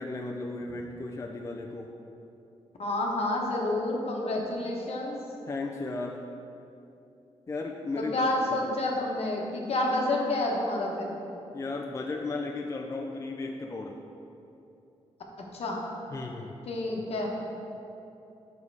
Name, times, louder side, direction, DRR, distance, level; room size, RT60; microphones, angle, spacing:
voice 1, 0.0-1.9 5.5-6.2 7.5-8.6 11.5-14.0 16.1-16.6, left 3 dB, 25° left, 2 dB, 0.4 m, -35 dB
voice 2, 2.8-5.2 8.0-11.1 15.5-15.8 16.7-17.3, left 2 dB, 65° left, -1 dB, 1.0 m, -29 dB
5.3 x 5.2 x 4.7 m, 2.9 s
cardioid pair, 85°, 11 cm